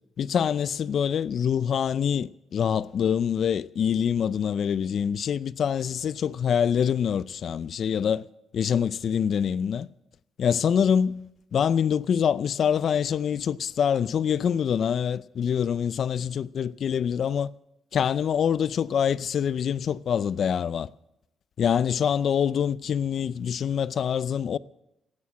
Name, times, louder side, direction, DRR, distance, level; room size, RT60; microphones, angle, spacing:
voice 1, 0.2-8.3 8.5-9.9 10.4-11.2 11.5-17.5 17.9-20.9 21.6-24.6, left 8 dB, 60° left, 0.5 m, -25 dB
16.0 x 9.9 x 8.6 m
cardioid pair, 90°, 0 cm